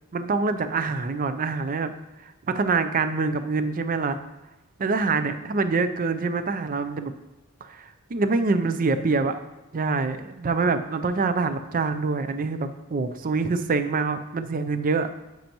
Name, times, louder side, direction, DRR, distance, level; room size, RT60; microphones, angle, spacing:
voice 1, 0.1-1.9 2.2-4.2 4.8-7.1 7.6-9.3 9.7-15.1, right 4 dB, 40° right, 10 dB, 0.5 m, -25 dB
10.5 x 7.5 x 3.0 m, 1.0 s
head